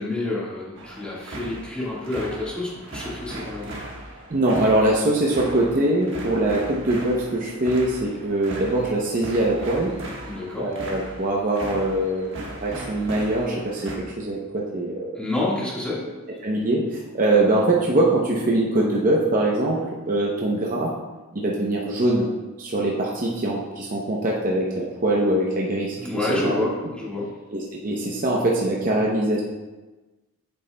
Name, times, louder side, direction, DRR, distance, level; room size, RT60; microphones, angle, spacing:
voice 1, 0.0-3.8 10.2-10.7 15.1-16.1 25.9-27.4, left 2 dB, 5° left, -6 dB, 1.6 m, -28 dB
sound 1, 0.8-14.0, right 1 dB, 55° right, 1.3 m, -38 dB
voice 2, 4.3-9.9 10.6-13.9 14.2-15.1 16.4-20.9 21.3-22.3 22.6-26.7 27.5-29.4, right 1 dB, 35° right, -3 dB, 0.7 m, -23 dB
8.8 x 6.8 x 2.2 m, 1.2 s
head